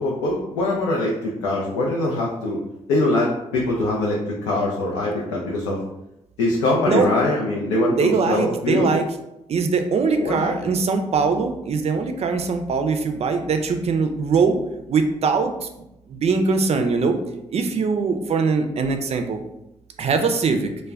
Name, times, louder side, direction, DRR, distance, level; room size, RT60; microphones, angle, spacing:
voice 1, 0.0-2.6 2.9-5.8 6.4-9.0 10.2-10.7, left 2 dB, 85° left, -3 dB, 0.4 m, -23 dB
voice 2, 7.9-9.1 9.5-14.6 14.9-15.7 16.1-17.2 17.5-19.4 20.0-20.7, right 4 dB, 50° right, 6 dB, 0.4 m, -21 dB
2.2 x 2.1 x 3.4 m, 0.88 s
hypercardioid pair, 45°, 14 cm